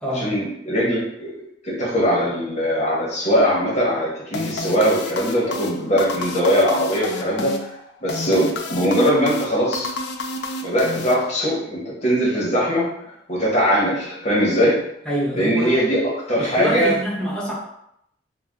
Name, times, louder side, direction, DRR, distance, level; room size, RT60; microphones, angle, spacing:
voice 1, 0.1-1.3 1.6-7.6 8.0-9.9 10.6-12.9 13.3-14.8 15.3-17.0, equal, 40° left, -5 dB, 1.0 m, -20 dB
sound 1, 4.3-11.7, left 2 dB, 65° left, 0.3 m, -31 dB
voice 2, 15.0-15.8 16.4-17.5, equal, 5° left, -7 dB, 0.8 m, -26 dB
2.6 x 2.2 x 3.4 m, 0.76 s
head